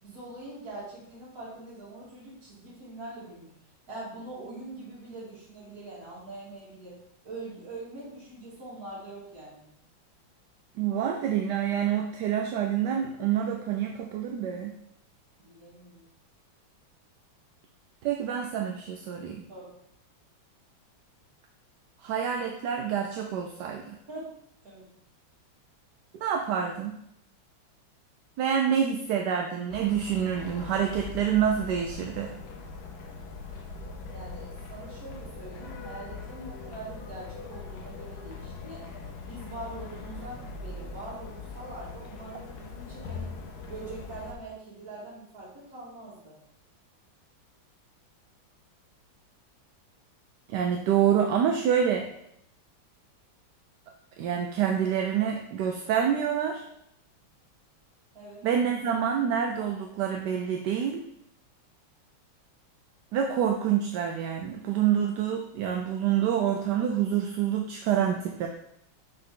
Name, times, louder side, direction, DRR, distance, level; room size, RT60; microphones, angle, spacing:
voice 1, 0.0-3.5 3.9-7.0 7.2-9.6 15.4-16.1 19.5-19.7 24.1-24.3 24.6-24.8 34.0-38.9 39.2-43.3 43.6-46.3 58.1-58.4, right 2 dB, 45° right, -9 dB, 2.7 m, -43 dB
voice 2, 10.8-14.7 18.0-19.4 22.0-24.0 26.1-26.9 28.4-32.3 50.5-52.1 54.2-56.6 58.4-61.0 63.1-68.5, right 8 dB, 70° right, 3 dB, 1.1 m, -27 dB
sound 1, 29.7-44.3, left 4 dB, 85° left, 1.7 m, -41 dB
5.9 x 5.4 x 3.8 m, 0.76 s
omnidirectional pair, 2.1 m